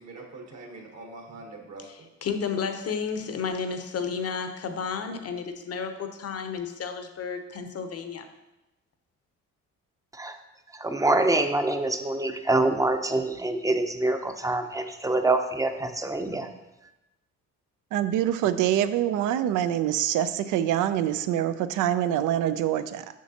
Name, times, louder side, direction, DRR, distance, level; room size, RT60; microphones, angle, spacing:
voice 1, 0.0-2.1, right 2 dB, 60° right, 2 dB, 1.3 m, -43 dB
voice 2, 1.9-8.3, left 6 dB, 55° left, 7 dB, 0.8 m, -32 dB
voice 3, 10.7-16.5, right 2 dB, 10° right, 7 dB, 0.6 m, -25 dB
voice 4, 17.9-23.1, right 11 dB, 85° right, 12 dB, 0.5 m, -25 dB
7.3 x 5.9 x 2.8 m, 0.97 s
cardioid pair, 90°, 30 cm